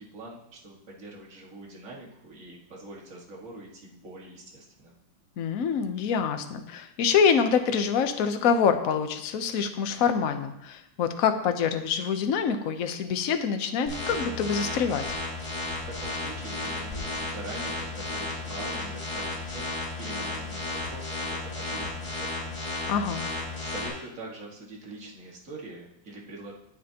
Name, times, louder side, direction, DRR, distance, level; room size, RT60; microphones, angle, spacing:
voice 1, 0.0-4.9 15.8-22.9 23.6-26.5, right 2 dB, 40° right, -3 dB, 2.2 m, -44 dB
voice 2, 5.4-15.0 22.9-23.2, left 6 dB, 55° left, 7 dB, 1.1 m, -25 dB
sound 1, 13.9-23.9, left 2 dB, 30° left, 3.7 m, -33 dB
19.0 x 7.7 x 2.9 m, 0.79 s
omnidirectional pair, 2.1 m